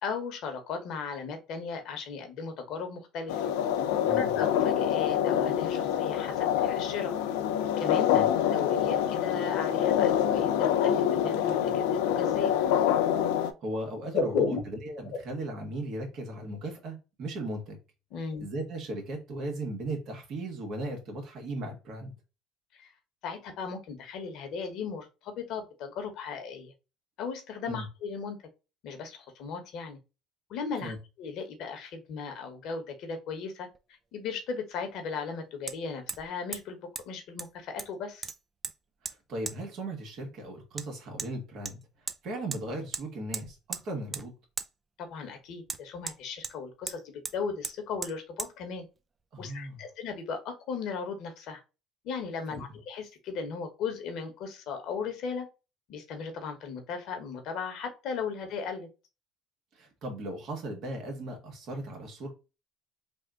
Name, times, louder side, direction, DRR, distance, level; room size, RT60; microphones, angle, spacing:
voice 1, 0.0-3.5 4.1-7.1 7.8-8.2 8.5-10.5 10.8-12.5 14.1-14.6 18.1-18.5 22.7-22.9 23.2-26.7 27.2-28.4 28.8-30.0 30.5-33.7 34.1-36.8 37.0-38.3 45.0-48.8 49.4-51.6 52.0-55.5 55.9-58.9, left 5 dB, 65° left, 6 dB, 1.0 m, -36 dB
sound 1, 3.3-13.5, left 10 dB, 85° left, 0.4 m, -26 dB
voice 2, 13.6-17.8 18.4-22.1 27.6-27.9 30.8-31.0 39.0-41.8 42.2-44.3 49.3-49.8 52.5-52.8 59.7-62.3, right 1 dB, 60° right, 2 dB, 1.6 m, -37 dB
Hammer, 33.7-33.8 35.7-35.8 36.1-36.3 36.5-36.6 37.0-37.1 37.4-37.9 38.2-38.7 39.1-39.2 39.5-39.6 40.8-40.9 41.2-41.3 41.7-42.2 42.5-42.6 42.9-43.0 43.3-43.8 44.1-44.3 44.6-44.7 45.7-46.6 46.9-47.0 47.2-47.4 47.6-47.8 48.0-48.1 48.4-48.5, right 4 dB, 30° right, 0.5 m, -37 dB
3.5 x 2.4 x 3.7 m, 0.29 s
supercardioid pair, 80°, 0 cm